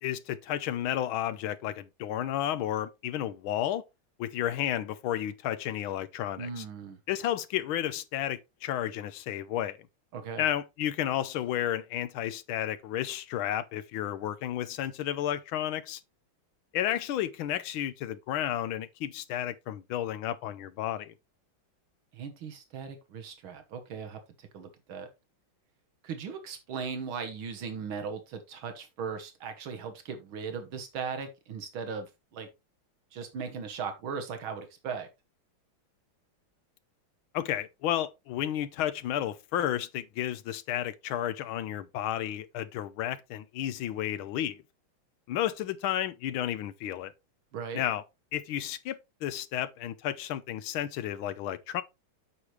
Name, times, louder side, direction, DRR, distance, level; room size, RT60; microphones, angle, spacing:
voice 1, 0.0-3.8 4.2-6.6 7.1-9.8 10.4-16.0 16.7-21.1 37.3-44.6 45.3-47.1 47.7-48.0 48.3-51.8, left 11 dB, 90° left, 1.6 m, -32 dB
voice 2, 6.4-7.0 10.1-10.4 22.1-25.1 26.0-32.5 33.1-35.1 47.5-47.8, right 6 dB, 80° right, 2.0 m, -38 dB
8.6 x 6.4 x 3.2 m
omnidirectional pair, 2.2 m